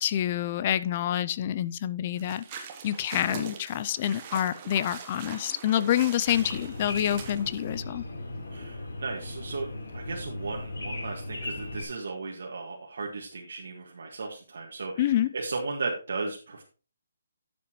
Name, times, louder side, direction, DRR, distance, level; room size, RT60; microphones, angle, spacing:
voice 1, 0.0-8.0 15.0-15.3, left 11 dB, 25° left, 16 dB, 0.3 m, -27 dB
sound 1, 2.2-7.8, right 7 dB, 20° right, 1.0 m, -43 dB
sound 2, 6.2-11.8, left 2 dB, 90° left, 3.5 m, -37 dB
voice 2, 8.5-9.7 9.9-16.6, right 3 dB, 60° right, -1 dB, 1.6 m, -35 dB
11.5 x 7.2 x 3.0 m, 0.36 s
hypercardioid pair, 175°, 0 cm